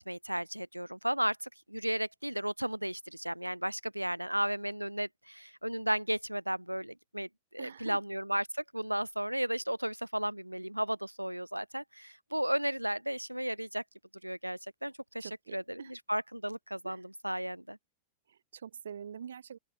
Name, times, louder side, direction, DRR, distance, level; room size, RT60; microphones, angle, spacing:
voice 1, 0.1-13.8 14.2-17.8, right 1 dB, 90° right, 0.4 m, -34 dB
voice 2, 7.6-8.0 15.2-15.9 16.8-17.0 18.3-19.6, right 8 dB, 70° right, 3.8 m, -45 dB
open air
figure-of-eight pair, 90°, 0 cm